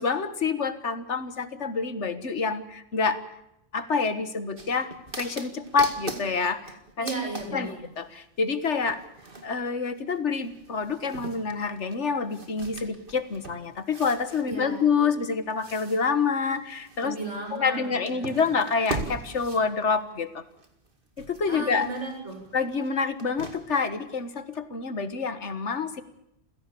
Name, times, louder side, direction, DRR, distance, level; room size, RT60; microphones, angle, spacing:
voice 1, 0.0-2.6 2.9-3.2 3.7-4.9 5.2-6.6 7.0-7.1 7.5-8.1 8.4-9.0 9.4-17.2 17.5-20.3 21.3-21.9 22.5-26.0, left 5 dB, 75° left, 11 dB, 1.9 m, -27 dB
sound 1, 4.6-8.2 8.8-20.9 21.2-23.9 24.3-24.4, right 3 dB, 50° right, 2.4 m, -41 dB
voice 2, 7.0-7.9 14.5-14.8 17.0-18.4 21.5-22.4, right 3 dB, 90° right, 2 dB, 7.5 m, -35 dB
28.5 x 16.5 x 7.0 m, 0.80 s
omnidirectional pair, 1.2 m